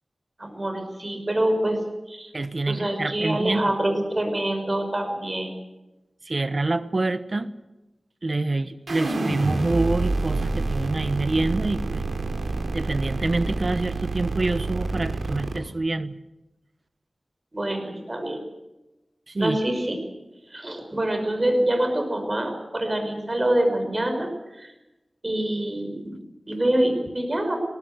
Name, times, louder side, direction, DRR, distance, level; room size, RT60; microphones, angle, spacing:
voice 1, 0.4-1.8 2.1-2.3 2.7-5.5 17.5-18.4 19.4-20.0 20.5-24.7 25.2-27.6, right 1 dB, 30° right, 4 dB, 5.8 m, -25 dB
voice 2, 2.3-3.7 6.2-7.5 8.2-12.0 12.7-16.1 19.3-19.6, right 2 dB, 45° right, 12 dB, 1.1 m, -26 dB
sound 1, 8.9-15.6, right 3 dB, 85° right, 3.4 m, -28 dB
20.5 x 18.5 x 8.0 m, 1.0 s
wide cardioid pair, 90°, 0 cm